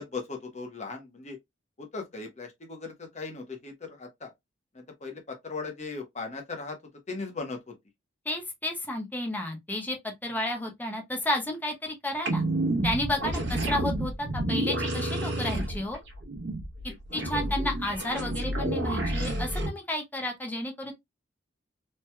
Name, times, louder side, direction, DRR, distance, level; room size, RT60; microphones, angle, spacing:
voice 1, 0.0-1.4 1.8-4.3 4.7-6.8 7.1-7.7 13.2-13.3 17.1-17.4, left 4 dB, 35° left, 1.0 m, -38 dB
voice 2, 8.2-12.4 12.8-16.0 17.1-20.9, left 1 dB, 10° left, 0.7 m, -32 dB
sound 1, 12.2-19.7, right 1 dB, 60° right, 1.0 m, -30 dB
3.2 x 2.9 x 2.2 m
head